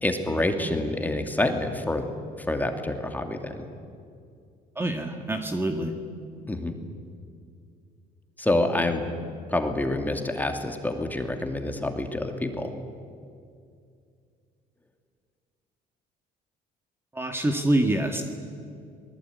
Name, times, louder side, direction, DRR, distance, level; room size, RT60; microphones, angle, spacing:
voice 1, 0.0-2.0 2.5-3.7 6.5-6.8 8.4-9.1 9.5-12.7, left 1 dB, 10° left, 4 dB, 2.6 m, -27 dB
voice 2, 4.8-5.9 17.1-18.2, right 1 dB, 15° right, 4 dB, 2.1 m, -25 dB
27.0 x 19.5 x 9.6 m, 2.3 s
cardioid pair, 110°, 17 cm